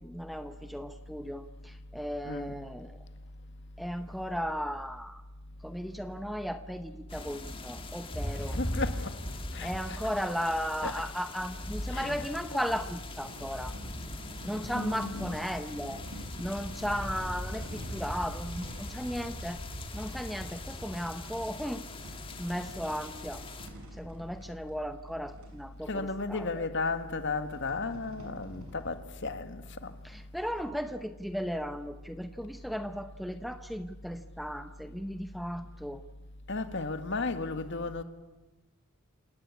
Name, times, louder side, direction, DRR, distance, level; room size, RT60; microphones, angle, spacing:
voice 1, 0.0-3.0 3.8-5.2 5.6-8.6 9.6-13.7 14.4-19.6 19.9-21.8 22.4-23.4 23.9-26.7 30.0-36.0, equal, ahead, 0.8 m, -36 dB
sound 1, 7.1-23.7, left 1 dB, 25° left, 1.9 m, -41 dB
voice 2, 8.5-10.0 10.8-10.9 11.9-12.2 12.5-12.6 14.7-15.3 25.9-29.9 36.5-38.0, left 3 dB, 55° left, 1.9 m, -34 dB
sound 2, 12.3-25.6 26.3-26.4 26.6-26.7 27.3-28.9, equal, 75° right, 6.8 m, -45 dB
28.5 x 18.5 x 8.6 m
head